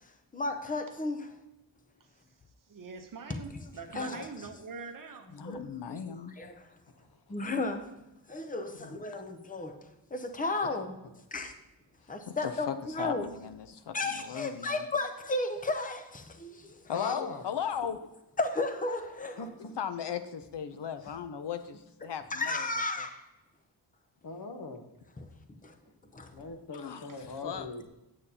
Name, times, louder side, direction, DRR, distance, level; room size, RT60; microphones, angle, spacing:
voice 1, 0.4-1.2 3.9-4.2 7.3-7.8 8.3-8.7 9.0-9.7 10.4-10.9 11.3-11.5 12.1-13.3 13.9-16.0 17.0-17.1 18.4-19.3 22.3-23.1, left 2 dB, 20° left, 0.6 m, -32 dB
voice 2, 2.7-5.4, right 4 dB, 50° right, 0.8 m, -44 dB
voice 3, 5.3-6.4 8.8-8.9 12.3-14.8 16.9-18.0 19.8-22.7 26.7-27.7, left 8 dB, 70° left, 0.6 m, -37 dB
voice 4, 16.9-17.4 19.4-19.7 21.0-21.1 24.2-24.8 26.3-27.8, left 3 dB, 55° left, 0.9 m, -41 dB
8.7 x 8.6 x 2.8 m
wide cardioid pair, 180°, 43 cm